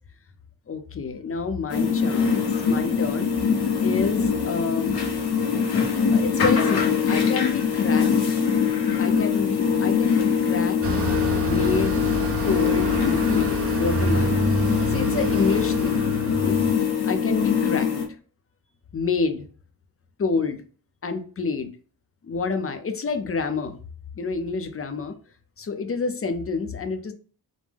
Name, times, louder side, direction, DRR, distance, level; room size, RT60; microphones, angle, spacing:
voice 1, 0.7-3.3 3.8-4.9 6.1-8.4 9.0-10.8 11.5-12.0 12.5-14.4 14.9-16.6 17.0-17.9 18.9-19.4 20.2-20.6 21.0-21.7 22.2-23.8 24.2-25.1 25.6-27.1, left 4 dB, 35° left, 8 dB, 0.6 m, -28 dB
sound 1, 1.7-18.0, left 6 dB, 85° left, 1.2 m, -23 dB
Bus, 10.8-16.7, right 2 dB, 35° right, 0.6 m, -27 dB
5.2 x 2.1 x 3.4 m, 0.41 s
wide cardioid pair, 140°, 38 cm